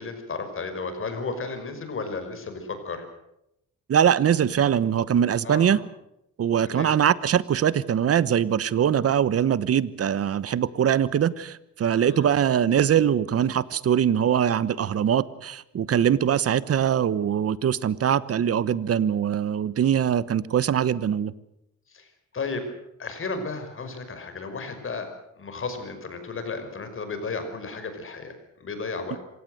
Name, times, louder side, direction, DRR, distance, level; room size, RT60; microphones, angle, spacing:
voice 1, 0.0-3.1 5.4-5.8 6.7-6.9 12.0-12.3 21.9-22.7 23.0-25.1 25.4-29.2, left 4 dB, 45° left, 8 dB, 5.6 m, -34 dB
voice 2, 3.9-5.8 6.4-21.3, right 9 dB, 50° right, 18 dB, 1.1 m, -22 dB
26.5 x 17.0 x 7.9 m, 0.84 s
cardioid pair, 90°, 30 cm